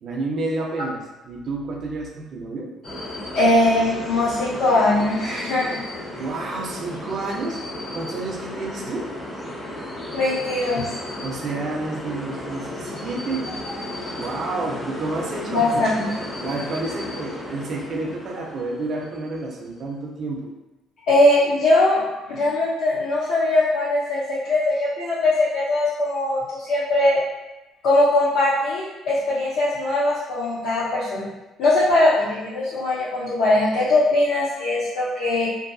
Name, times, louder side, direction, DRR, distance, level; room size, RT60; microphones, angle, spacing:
voice 1, 0.0-2.7 6.1-7.6 7.9-9.1 11.2-13.7 14.1-16.0 16.3-20.5, right 3 dB, 40° right, 0 dB, 0.4 m, -30 dB
sound 1, 2.8-19.6, left 1 dB, 20° left, 0.5 m, -34 dB
voice 2, 3.3-5.9 10.1-10.9 15.5-16.1 21.1-27.2 27.8-31.3 31.6-35.5, left 2 dB, 80° left, -8 dB, 0.6 m, -20 dB
2.6 x 2.6 x 2.5 m, 1.0 s
cardioid pair, 170°, 0 cm